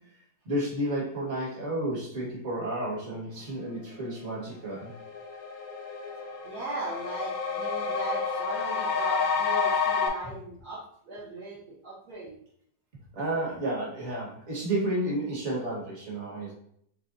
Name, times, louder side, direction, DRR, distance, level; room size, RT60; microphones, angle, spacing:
voice 1, 0.4-4.9 13.1-16.5, right 1 dB, 45° right, -4 dB, 1.7 m, -31 dB
sound 1, 4.3-4.4 4.7-10.1, left 5 dB, 65° left, 1.1 m, -29 dB
voice 2, 6.4-12.3, right 3 dB, 65° right, -8 dB, 1.5 m, -38 dB
6.4 x 2.2 x 2.6 m, 0.67 s
omnidirectional pair, 1.9 m